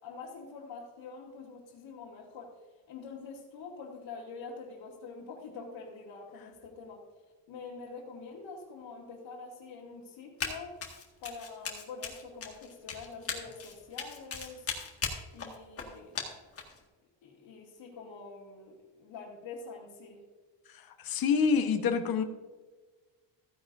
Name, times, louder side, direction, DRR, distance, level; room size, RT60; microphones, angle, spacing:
voice 1, 0.0-2.6 2.9-7.0 7.5-10.8 11.2-14.7 15.3-16.3 17.2-20.2, left 4 dB, 70° left, -6 dB, 2.4 m, -45 dB
Run, 10.4-10.6 10.8-16.8, left 5 dB, 30° left, 1.8 m, -37 dB
voice 2, 21.0-22.2, left 6 dB, 50° left, 6 dB, 1.2 m, -26 dB
15.0 x 10.0 x 2.6 m, 1.3 s
cardioid pair, 175°, 46 cm